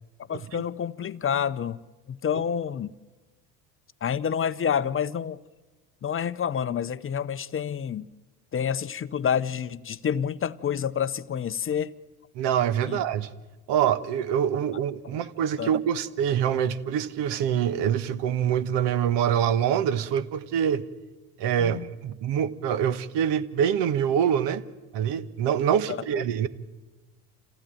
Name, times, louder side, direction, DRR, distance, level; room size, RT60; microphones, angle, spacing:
voice 1, 0.3-1.8 2.1-2.9 4.0-5.4 6.0-8.1 8.5-11.9 12.9-13.0 15.6-15.7 21.6-21.9 25.9-26.0, left 8 dB, 25° left, 0.7 m, -28 dB
voice 2, 12.3-13.3 13.7-20.8 21.4-24.6 24.9-26.5, right 9 dB, 60° right, 1.3 m, -25 dB
27.0 x 16.0 x 9.0 m
hypercardioid pair, 75°, 49 cm